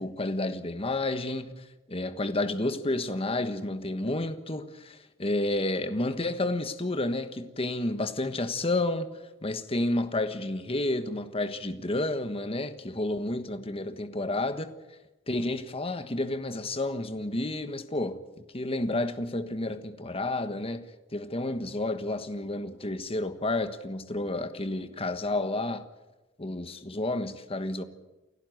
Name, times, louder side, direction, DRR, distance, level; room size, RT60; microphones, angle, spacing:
voice 1, 0.0-9.1 9.4-14.7 15.3-18.2 18.5-20.8 21.1-25.8 26.4-27.8, left 2 dB, 30° left, 1.3 m, -30 dB
29.0 x 11.5 x 9.3 m
head